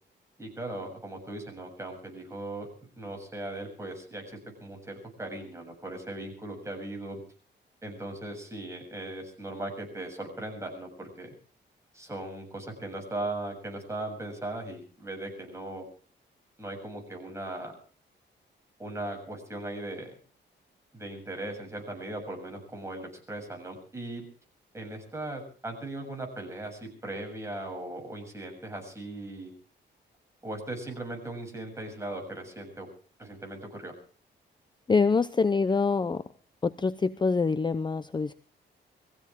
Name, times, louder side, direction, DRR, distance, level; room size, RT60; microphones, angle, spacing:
voice 1, 0.4-2.7 3.0-7.2 7.8-11.3 11.9-15.9 16.6-17.7 18.8-20.2 20.9-24.3 24.7-29.5 30.4-32.9 33.2-33.9, right 1 dB, 15° right, 2 dB, 7.4 m, -38 dB
voice 2, 34.9-36.2 36.6-38.3, left 4 dB, 25° left, 13 dB, 0.7 m, -25 dB
23.5 x 16.0 x 3.7 m, 0.40 s
cardioid pair, 100°, 19 cm